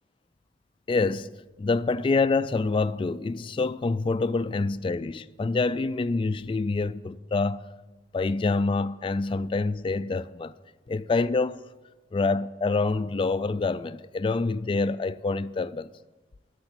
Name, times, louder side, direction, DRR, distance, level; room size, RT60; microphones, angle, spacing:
voice 1, 0.9-1.3 1.6-7.6 8.1-10.5 10.9-11.6 12.1-15.9, left 3 dB, 30° left, 0.3 m, -26 dB
12.0 x 6.7 x 8.9 m
head